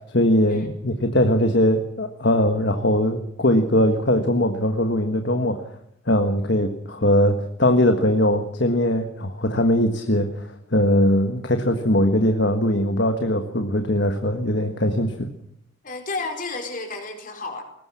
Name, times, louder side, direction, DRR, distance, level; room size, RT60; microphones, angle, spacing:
voice 1, 0.1-5.6 6.1-15.3, left 1 dB, 60° left, 6 dB, 1.5 m, -21 dB
voice 2, 15.8-17.6, left 3 dB, 40° left, 4 dB, 4.5 m, -31 dB
21.0 x 19.5 x 7.4 m, 0.72 s
head